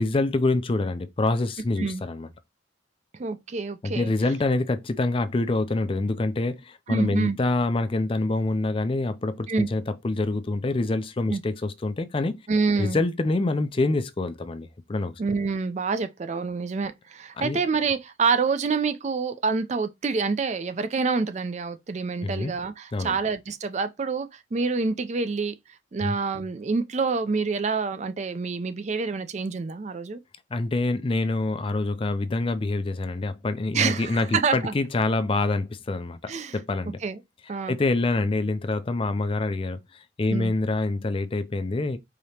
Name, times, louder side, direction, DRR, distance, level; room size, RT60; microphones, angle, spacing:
voice 1, 0.0-2.3 3.8-12.4 12.8-15.1 17.4-17.6 22.2-22.5 22.9-23.2 26.0-26.2 30.5-37.0 37.7-42.0, left 2 dB, 30° left, 0.4 m, -26 dB
voice 2, 3.1-4.1 6.9-7.4 9.5-9.7 11.3-11.4 12.5-13.0 15.2-25.5 25.9-30.2 33.7-34.7 36.3-36.6 37.0-37.2 37.5-37.8 40.3-40.5, right 4 dB, 35° right, 0.4 m, -27 dB
4.9 x 2.9 x 2.8 m
head